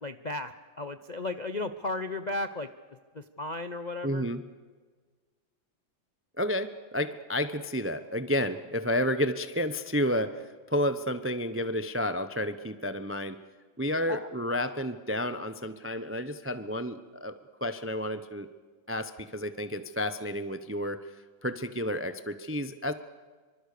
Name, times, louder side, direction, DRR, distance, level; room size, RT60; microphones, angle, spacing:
voice 1, 0.0-2.7 3.1-4.3 14.1-14.3, left 2 dB, 55° left, 9 dB, 0.4 m, -35 dB
voice 2, 4.0-4.4 6.4-13.4 13.8-18.5 18.9-21.0 21.4-22.9, equal, 20° right, 11 dB, 0.4 m, -31 dB
25.0 x 25.0 x 6.8 m, 1.5 s
omnidirectional pair, 2.1 m